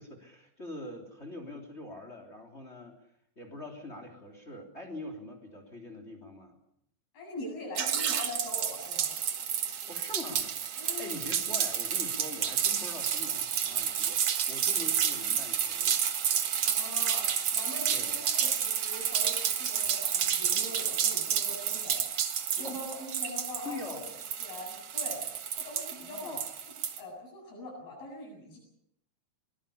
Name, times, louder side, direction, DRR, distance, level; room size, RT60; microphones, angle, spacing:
voice 1, 0.0-3.0 3.3-6.6 9.9-16.0 17.9-18.1 22.6-22.8 23.6-24.1 26.0-26.5, left 1 dB, 20° left, 4 dB, 3.2 m, -44 dB
voice 2, 7.1-9.1 10.8-11.2 16.6-24.0 24.4-25.2 25.5-26.3 27.0-28.6, left 1 dB, 85° left, 0 dB, 9.9 m, -43 dB
sound 1, 7.8-27.0, right 8 dB, 50° right, 2.2 m, -30 dB
23.5 x 20.0 x 7.0 m, 0.73 s
omnidirectional pair, 4.2 m